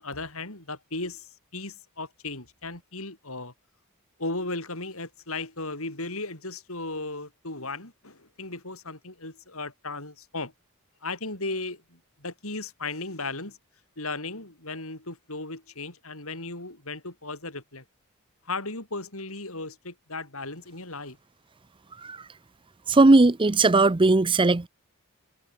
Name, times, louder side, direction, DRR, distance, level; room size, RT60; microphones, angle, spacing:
voice 1, 0.0-3.5 4.2-10.5 11.0-13.6 14.0-17.8 18.4-21.2, left 3 dB, 65° left, 7.5 m, -36 dB
voice 2, 22.9-24.7, right 2 dB, 20° right, 0.6 m, -18 dB
head